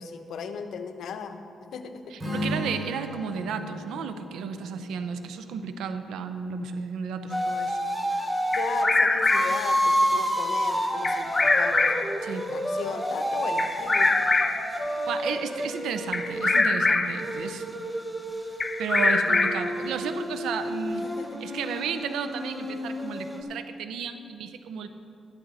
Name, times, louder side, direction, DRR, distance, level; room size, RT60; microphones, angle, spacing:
voice 1, 0.0-1.4 1.7-2.0 8.5-11.9 12.3-14.3 21.0-21.3, left 6 dB, 80° left, 7 dB, 0.8 m, -36 dB
voice 2, 2.1-7.9 12.2-12.5 15.1-17.7 18.8-21.1 21.4-24.9, right 6 dB, 90° right, 9 dB, 0.7 m, -33 dB
Strum, 2.2-6.4, equal, 30° right, 3.1 m, -36 dB
sound 1, 7.3-8.9 9.3-16.6 17.1-23.4, equal, 5° right, 1.3 m, -30 dB
Bird vocalization bird call bird song, 8.5-9.7 11.0-12.2 13.6-14.7 16.1-17.2 18.6-19.8, left 3 dB, 25° left, 0.7 m, -23 dB
12.0 x 11.5 x 4.1 m, 2.5 s
cardioid pair, 85°, 0 cm